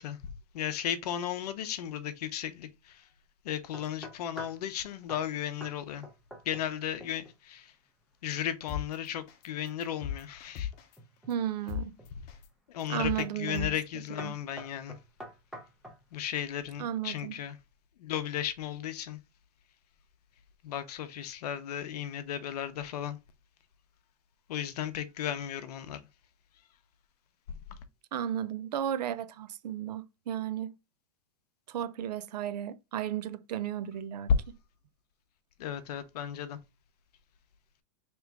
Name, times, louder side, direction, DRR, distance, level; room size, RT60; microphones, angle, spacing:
voice 1, 0.0-3.1 3.4-6.1 6.4-7.7 8.2-10.7 12.7-15.0 16.1-17.6 18.0-19.2 20.6-23.2 24.5-26.0 27.7-27.8 34.3-34.4 35.6-36.6, left 9 dB, 75° left, 0.7 m, -34 dB
sound 1, 3.7-4.7 5.1-5.3 5.6-5.8 6.0-6.7 7.0-7.4 10.7-11.4 12.0-12.4 13.2-13.4 13.7-13.9 14.2-16.0, equal, ahead, 0.8 m, -47 dB
sound 2, 8.7-8.8 9.3-9.4 9.8-10.9 11.3-11.4 11.7-11.8 12.3-12.4 12.8-13.2 13.5-13.7, left 10 dB, 45° left, 0.8 m, -35 dB
voice 2, 11.3-11.9 12.9-13.7 14.2-14.4 16.8-17.3 28.1-30.7 31.7-34.3, right 10 dB, 90° right, 0.5 m, -34 dB
3.4 x 3.0 x 3.5 m
hypercardioid pair, 125°, 20 cm